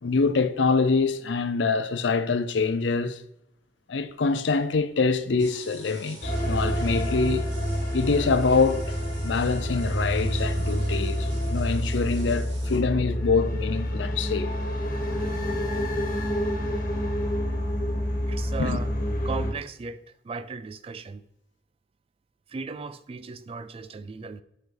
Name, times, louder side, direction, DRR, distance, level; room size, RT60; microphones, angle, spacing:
voice 1, 0.0-3.2 3.9-7.5 7.9-9.0 9.2-14.5 18.6-18.8, left 4 dB, 70° left, 0.5 m, -25 dB
sound 1, 5.4-12.8, right 3 dB, 70° right, 1.9 m, -47 dB
sound 2, 6.2-19.5, equal, 50° left, 1.3 m, -28 dB
voice 2, 18.3-18.9 19.2-21.2 22.5-24.4, right 4 dB, 30° right, 0.3 m, -36 dB
6.8 x 5.2 x 3.9 m
head